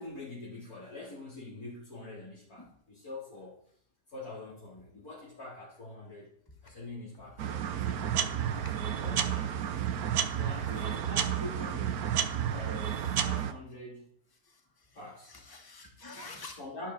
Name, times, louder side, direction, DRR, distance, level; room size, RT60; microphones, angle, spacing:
voice 1, 0.0-3.7 4.1-6.3 6.6-8.7 9.0-9.9 10.4-14.1 14.9-15.3 16.6-16.9, left 2 dB, 60° left, -9 dB, 4.4 m, -45 dB
sound 1, 7.4-13.5, right 9 dB, 65° right, 1.3 m, -31 dB
voice 2, 14.4-14.9 15.3-16.5, left 3 dB, 10° left, 1 dB, 2.2 m, -48 dB
12.0 x 12.0 x 4.3 m, 0.62 s
omnidirectional pair, 1.8 m